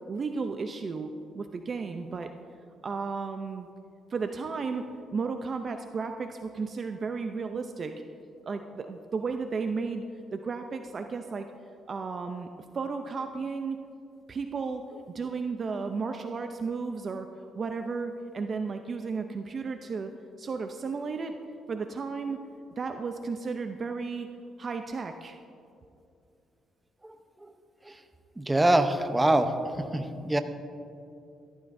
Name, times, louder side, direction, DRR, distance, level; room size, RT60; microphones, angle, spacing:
voice 1, 0.1-2.3 2.8-3.7 4.1-7.9 8.5-10.0 10.3-11.5 11.9-12.5 12.7-13.8 14.3-14.8 15.1-17.3 17.5-20.1 20.4-21.4 21.7-22.4 22.8-24.3 24.6-25.4, right 4 dB, 45° right, 6 dB, 0.5 m, -33 dB
voice 2, 28.4-29.5 29.9-30.4, right 1 dB, 15° right, 8 dB, 0.8 m, -24 dB
14.5 x 13.5 x 2.7 m, 2.6 s
cardioid pair, 90°, 0 cm